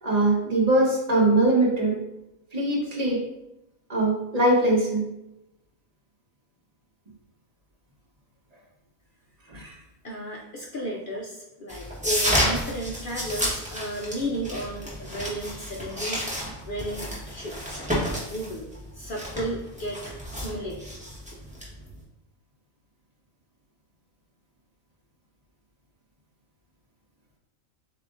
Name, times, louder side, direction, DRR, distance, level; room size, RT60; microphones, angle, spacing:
voice 1, 0.0-2.0 2.5-3.3 3.9-5.1 9.5-9.7, right 2 dB, 35° right, -2 dB, 0.9 m, -22 dB
voice 2, 10.0-16.2 16.7-17.8 18.3-18.7 19.0-20.0 20.3-20.8, equal, 55° left, -1 dB, 0.6 m, -33 dB
sound 1, 11.7-22.0, equal, 5° right, 1.1 m, -31 dB
7.3 x 2.8 x 2.5 m, 0.89 s
omnidirectional pair, 1.4 m